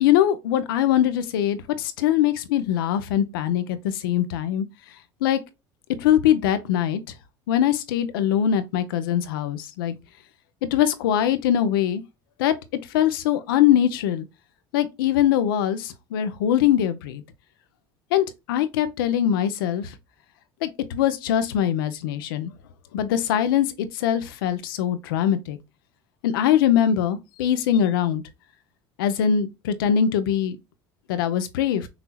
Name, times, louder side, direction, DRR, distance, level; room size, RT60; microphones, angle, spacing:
voice 1, 0.0-4.6 5.2-5.4 6.0-7.0 7.5-9.9 10.7-12.0 12.4-12.5 12.9-14.2 14.7-17.2 18.1-19.9 20.6-22.5 22.9-25.6 26.2-28.2 29.0-30.6 31.1-31.9, left 10 dB, 85° left, 0.6 m, -22 dB
5.9 x 2.8 x 2.3 m
supercardioid pair, 85°, 11 cm